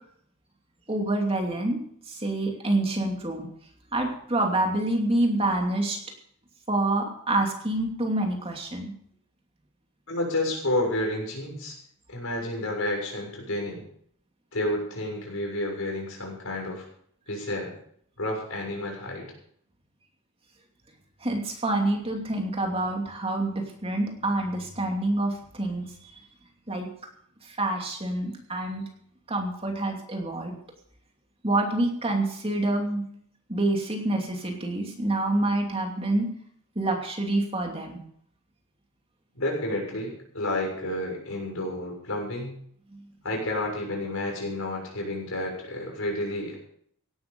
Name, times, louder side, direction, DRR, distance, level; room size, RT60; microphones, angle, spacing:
voice 1, 0.9-1.8 2.0-3.5 3.9-6.0 6.7-8.9 21.2-26.2 26.7-26.9 27.4-28.8 29.3-30.5 31.4-33.0 33.5-36.3 36.7-38.0 42.9-43.1, right 2 dB, 25° right, 2 dB, 2.7 m, -27 dB
voice 2, 10.1-11.8 12.1-13.8 14.5-16.8 17.3-17.7 18.2-19.3 39.3-42.6 43.2-46.5, left 1 dB, 65° left, 0 dB, 6.9 m, -30 dB
17.0 x 11.5 x 5.4 m, 0.63 s
head